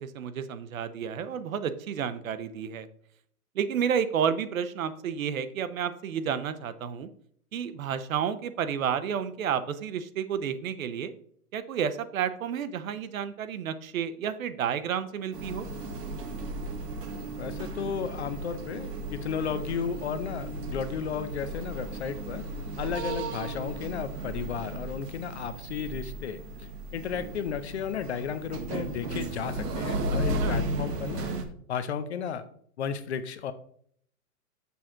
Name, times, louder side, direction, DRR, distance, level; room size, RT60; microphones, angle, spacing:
voice 1, 0.0-2.9 3.6-7.1 7.5-11.1 11.5-15.7 30.4-30.6, right 8 dB, 60° right, 12 dB, 0.8 m, -31 dB
sound 1, 15.3-31.4, right 2 dB, 85° right, 1.6 m, -35 dB
voice 2, 17.4-22.4 22.8-31.3 31.7-32.5 32.8-33.5, left 7 dB, 45° left, 12 dB, 0.6 m, -34 dB
7.0 x 5.9 x 3.7 m, 0.63 s
hypercardioid pair, 160°, 46 cm